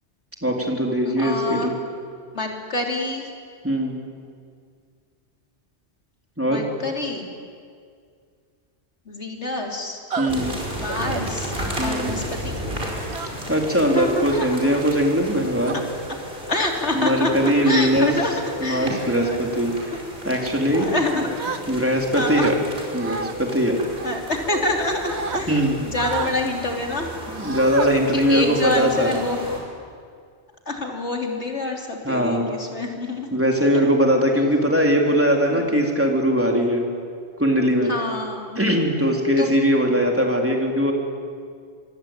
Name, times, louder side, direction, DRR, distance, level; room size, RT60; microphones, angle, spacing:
voice 1, 0.4-1.7 3.6-4.0 6.4-6.6 10.2-10.5 11.8-12.1 13.5-15.8 16.9-18.1 18.6-19.7 20.2-21.2 21.7-22.5 22.9-23.8 25.5-25.8 27.3-29.1 32.1-32.5 33.3-36.8 37.4-37.9 38.6-40.9, equal, 10° right, 1 dB, 3.7 m, -20 dB
voice 2, 1.2-1.7 2.3-3.3 6.5-7.3 9.1-10.0 10.8-11.5 11.8-12.5 13.9-14.6 16.5-18.3 18.6-19.5 19.9-20.0 20.7-21.3 22.1-22.6 24.0-27.1 28.1-29.4 30.7-33.3 33.6-33.9 34.3-34.5 35.3-35.7 37.8-38.7 39.4-39.5, left 2 dB, 80° left, 1 dB, 3.7 m, -27 dB
sound 1, 10.1-10.3 10.9-11.2 11.7-12.0 13.1-13.6 14.2-14.5 15.2-15.8 16.6-16.8 17.3-17.7 18.2-18.4 18.9-19.2 19.8-20.0 21.4-22.0 22.4-23.3 24.0-24.7 25.0-25.4 26.0-26.4 27.4-27.9 28.4-28.5 28.9-29.6, right 5 dB, 75° right, 1.6 m, -33 dB
sound 2, 10.3-29.6, equal, 55° right, 5.4 m, -34 dB
26.5 x 23.0 x 8.9 m, 2.1 s
omnidirectional pair, 1.1 m